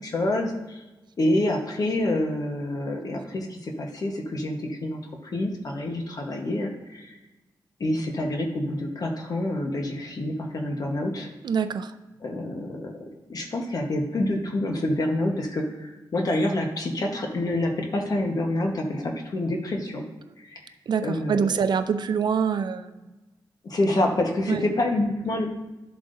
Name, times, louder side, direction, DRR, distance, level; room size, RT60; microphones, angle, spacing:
voice 1, 0.0-0.8 1.2-5.0 5.3-7.2 7.8-11.3 12.2-12.9 13.3-20.0 20.4-20.7 21.0-21.5 23.6-25.4, left 1 dB, 50° left, 2 dB, 1.2 m, -27 dB
voice 2, 11.4-11.9 20.9-22.9 24.5-24.6, right 6 dB, 65° right, 10 dB, 0.4 m, -25 dB
12.0 x 7.6 x 2.6 m, 1.1 s
wide cardioid pair, 130°, 8 cm